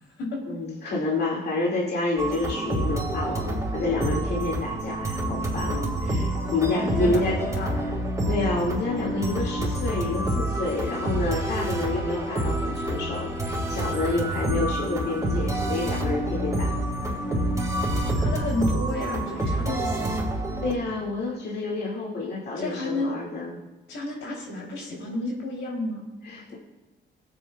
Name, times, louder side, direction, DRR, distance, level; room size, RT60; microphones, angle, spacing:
voice 1, 0.5-7.4 7.8-7.9 8.3-16.7 19.4-19.6 20.6-23.6 26.2-26.6, left 3 dB, 55° left, -4 dB, 2.2 m, -29 dB
sound 1, 2.2-20.7, right 1 dB, 15° right, 3.3 m, -28 dB
voice 2, 6.4-7.8 17.0-17.1 18.2-20.2 22.5-23.2 23.9-26.1, left 1 dB, 80° left, -2 dB, 3.3 m, -31 dB
19.0 x 8.7 x 2.4 m, 1.1 s
cardioid pair, 90°, 20 cm